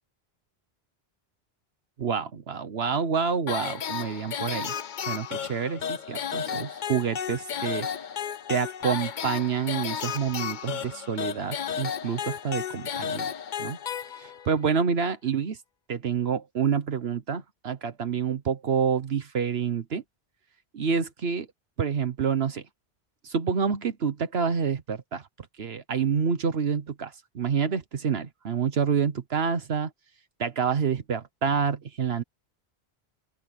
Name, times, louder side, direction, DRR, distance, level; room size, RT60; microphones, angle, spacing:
voice 1, 2.0-4.7 5.1-7.9 8.5-13.3 13.6-13.8 14.1-15.6 15.9-20.0 20.7-21.5 21.8-22.7 23.2-25.3 25.6-29.9 30.4-32.2, right 6 dB, 70° right, 1.3 m, -28 dB
sound 1, 3.5-14.6, left 8 dB, 50° left, 0.8 m, -33 dB
open air
omnidirectional pair, 1.1 m